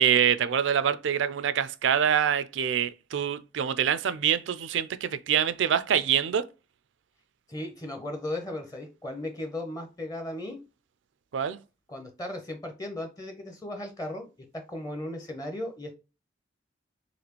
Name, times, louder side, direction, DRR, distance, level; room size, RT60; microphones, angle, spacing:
voice 1, 0.0-6.4 11.3-11.6, right 8 dB, 75° right, 0.4 m, -25 dB
voice 2, 7.5-10.6 11.9-14.3 14.5-15.9, left 1 dB, 20° left, 0.7 m, -36 dB
4.1 x 3.0 x 2.9 m
head